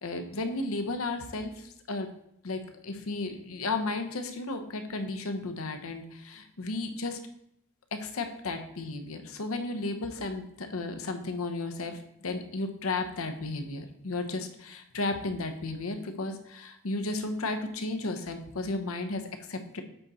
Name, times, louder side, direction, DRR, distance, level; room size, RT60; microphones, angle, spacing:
voice 1, 0.0-2.1 2.4-7.2 7.9-19.8, left 2 dB, 75° left, 6 dB, 0.8 m, -34 dB
7.8 x 4.0 x 4.2 m, 0.75 s
head